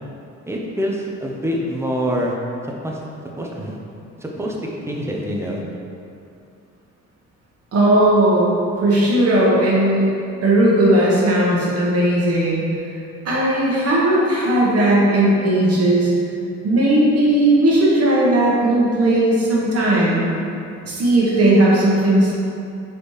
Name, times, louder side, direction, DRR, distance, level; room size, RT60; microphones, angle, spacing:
voice 1, 0.4-2.3 2.8-3.0 3.4-3.8 4.2-4.5 4.9-5.6, equal, 10° right, -2 dB, 0.6 m, -25 dB
voice 2, 7.7-10.1 10.4-12.6 13.2-16.1 16.6-20.4 20.8-22.3, right 1 dB, 55° right, -5 dB, 1.2 m, -16 dB
4.3 x 3.3 x 3.1 m, 2.6 s
cardioid pair, 90°, 30 cm